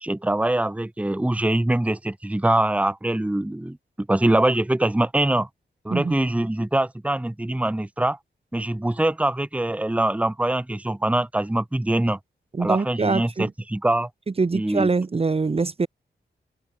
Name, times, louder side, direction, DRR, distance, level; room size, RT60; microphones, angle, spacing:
voice 1, 0.0-5.5 5.8-8.2 8.5-12.2 12.6-14.1 14.5-14.9, right 1 dB, 5° right, 1.2 m, -23 dB
voice 2, 12.5-13.5 14.4-15.9, right 4 dB, 30° right, 1.2 m, -23 dB
open air
wide cardioid pair, 170°, 19 cm